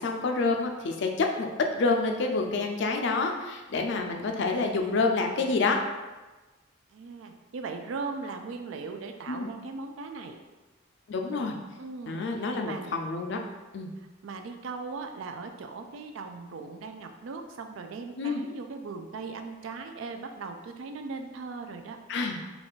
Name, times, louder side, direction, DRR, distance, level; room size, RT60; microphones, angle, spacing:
voice 1, 0.0-1.5 1.7-5.8 9.3-9.5 11.1-11.5 12.1-13.4 13.7-13.9 18.2-18.4 22.1-22.4, left 3 dB, 60° left, 3 dB, 0.4 m, -28 dB
voice 2, 6.9-10.4 11.8-13.0 14.0-22.0, right 4 dB, 75° right, 6 dB, 0.4 m, -39 dB
3.6 x 2.3 x 3.9 m, 1.2 s
head